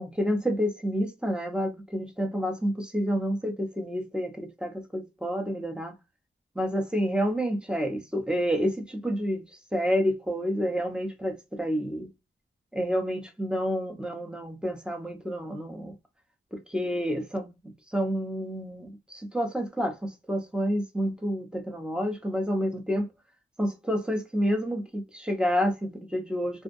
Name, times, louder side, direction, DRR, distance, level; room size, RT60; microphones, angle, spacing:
voice 1, 0.0-5.9 6.6-9.4 9.7-12.1 12.7-15.9 16.5-23.1 23.6-26.6, equal, 5° right, 0.7 m, -29 dB
2.6 x 2.1 x 2.4 m
cardioid pair, 60°, 20 cm